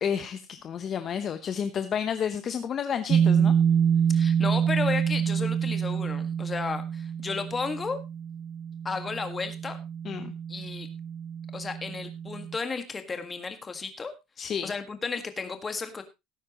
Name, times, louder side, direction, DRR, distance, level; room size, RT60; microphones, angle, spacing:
voice 1, 0.0-3.5 10.0-10.3 14.4-14.7, left 7 dB, 35° left, 10 dB, 0.8 m, -31 dB
sound 1, 3.1-12.6, right 8 dB, 30° right, 0.6 m, -27 dB
voice 2, 4.1-8.0 8.8-9.8 10.5-10.9 11.5-14.1 14.6-16.0, left 4 dB, 15° left, 8 dB, 1.7 m, -33 dB
17.5 x 9.5 x 3.0 m, 0.23 s
cardioid pair, 155°, 0 cm